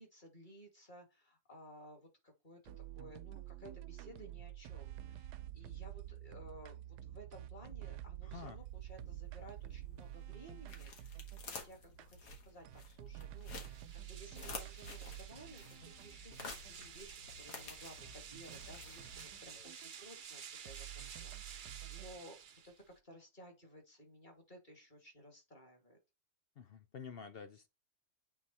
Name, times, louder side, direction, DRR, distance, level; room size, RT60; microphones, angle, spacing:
voice 1, 0.0-26.0, equal, 30° left, 2.4 m, -57 dB
sound 1, 2.7-11.5 12.0-12.1 12.6-17.1 17.3-17.4 17.7-17.8 18.0-20.4 20.7-22.4, right 13 dB, 85° right, 1.2 m, -50 dB
voice 2, 8.2-8.6 26.6-27.7, left 6 dB, 65° left, 0.6 m, -49 dB
sound 2, 8.7-19.7, left 3 dB, 85° left, 2.1 m, -52 dB
sound 3, 13.3-23.0, right 7 dB, 60° right, 0.5 m, -52 dB
8.3 x 3.8 x 4.3 m
omnidirectional pair, 1.7 m